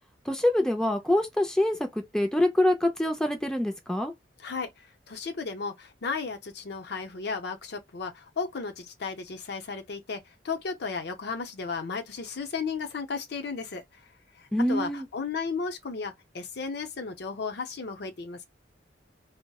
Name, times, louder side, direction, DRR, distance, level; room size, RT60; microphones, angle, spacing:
voice 1, 0.3-1.9 2.1-4.1 14.5-15.1, left 1 dB, 5° left, 0.5 m, -25 dB
voice 2, 4.4-14.1 14.3-18.4, left 4 dB, 60° left, 0.6 m, -34 dB
4.0 x 2.1 x 2.3 m
head